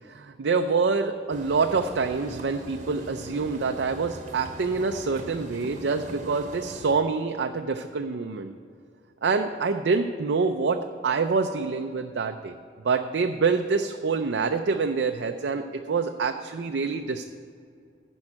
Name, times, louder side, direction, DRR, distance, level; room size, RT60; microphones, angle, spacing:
voice 1, 0.1-8.5 9.2-12.5 12.8-17.2, right 4 dB, 70° right, 5 dB, 0.5 m, -26 dB
sound 1, 1.3-6.9, right 1 dB, 45° right, 1.0 m, -42 dB
10.5 x 5.4 x 8.6 m, 2.3 s
head